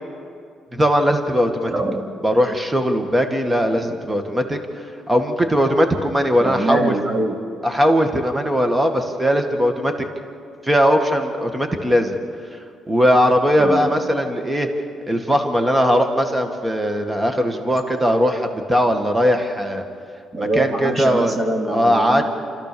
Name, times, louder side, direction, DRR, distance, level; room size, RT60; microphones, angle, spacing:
voice 1, 0.7-1.7 2.2-4.6 5.1-6.9 7.6-9.9 10.6-12.2 12.9-14.7 15.1-19.8 20.4-21.4 21.7-22.2, equal, 15° right, 5 dB, 1.9 m, -19 dB
voice 2, 1.7-2.1 6.4-7.4 13.6-13.9 20.3-22.2, right 1 dB, 35° right, 2 dB, 2.7 m, -23 dB
28.5 x 14.0 x 7.0 m, 2.4 s
cardioid pair, 90°, 0 cm